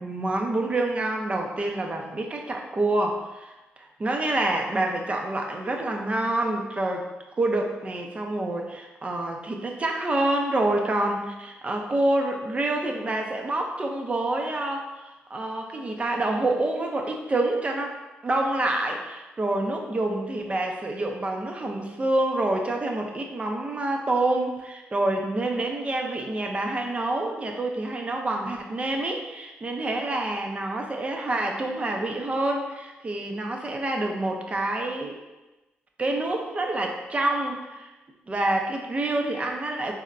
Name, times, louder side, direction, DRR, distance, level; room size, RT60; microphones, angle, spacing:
voice 1, 0.0-3.5 3.8-7.1 7.4-18.0 18.2-35.2 36.0-37.9 38.3-39.9, right 2 dB, 30° right, 2 dB, 0.5 m, -27 dB
4.0 x 2.1 x 2.5 m, 1.1 s
cardioid pair, 75°, 4 cm